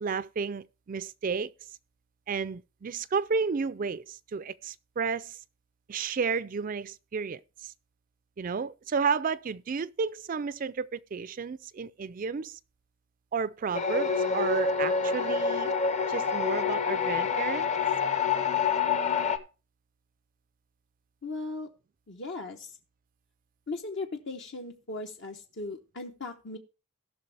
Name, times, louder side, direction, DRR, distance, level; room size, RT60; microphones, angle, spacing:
voice 1, 0.0-1.5 2.3-5.4 5.9-7.7 8.4-12.6 13.3-15.7 16.1-17.7, right 5 dB, 40° right, 0.4 m, -32 dB
sound 1, 13.7-19.4, left 6 dB, 35° left, 0.8 m, -27 dB
voice 2, 21.2-21.7 22.1-22.7 23.7-26.6, left 3 dB, 60° left, 0.9 m, -37 dB
17.5 x 6.1 x 3.3 m
head